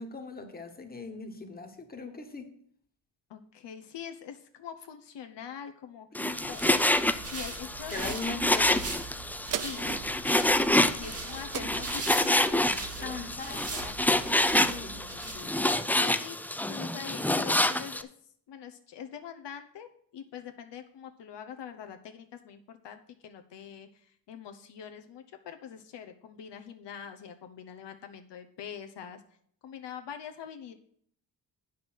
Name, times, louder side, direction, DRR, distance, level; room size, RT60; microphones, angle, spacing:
voice 1, 0.0-2.5 6.1-6.4 7.9-8.8 13.0-13.7 14.3-15.4, left 3 dB, 20° left, 4 dB, 1.4 m, -40 dB
voice 2, 3.3-6.8 7.1-7.9 8.3-8.8 9.6-9.9 10.6-14.2 14.9-15.5 16.0-18.1 18.5-29.2 29.6-30.7, left 8 dB, 75° left, 6 dB, 0.9 m, -44 dB
Frying (food), 6.1-18.0, left 1 dB, 5° left, 0.3 m, -27 dB
sound 1, 6.3-15.8, right 4 dB, 35° right, 1.5 m, -42 dB
sound 2, 9.5-14.3 14.8-14.9, right 10 dB, 50° right, 0.5 m, -41 dB
9.0 x 6.0 x 6.2 m, 0.62 s
wide cardioid pair, 130°, 42 cm